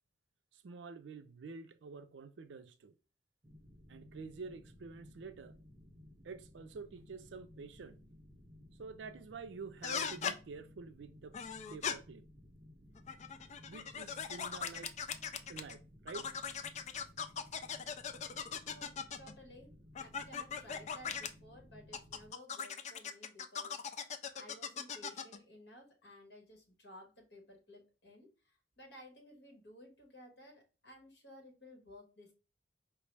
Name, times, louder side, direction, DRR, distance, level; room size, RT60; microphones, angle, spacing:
voice 1, 0.5-2.9 3.9-5.6 6.2-8.0 8.8-11.4 11.7-12.2 13.7-14.9 15.5-16.3, right 4 dB, 90° right, 0.4 m, -48 dB
sound 1, 3.4-22.3, left 1 dB, 30° right, 0.6 m, -58 dB
sound 2, 9.8-10.4 11.3-11.9 13.0-15.7 16.1-19.3 20.0-21.3 21.9-25.4, left 7 dB, 40° left, 0.3 m, -40 dB
voice 2, 18.7-32.3, left 1 dB, 70° left, 1.3 m, -56 dB
4.7 x 2.0 x 3.2 m
head